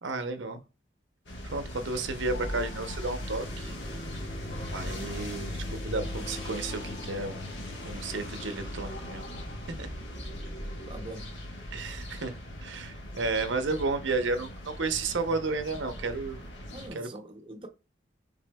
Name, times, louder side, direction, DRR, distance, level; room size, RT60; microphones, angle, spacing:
voice 1, 0.0-0.6 1.5-3.7 4.7-7.6 7.8-9.2 9.8-9.9 11.7-16.4 16.9-17.1, right 3 dB, 75° right, 0.8 m, -32 dB
sound 1, 1.3-16.9, left 1 dB, 75° left, 1.5 m, -39 dB
sound 2, 2.3-11.1, left 1 dB, 45° left, 1.0 m, -47 dB
voice 2, 10.9-11.3 16.7-17.7, right 2 dB, 25° right, 0.7 m, -43 dB
6.1 x 3.7 x 2.3 m
head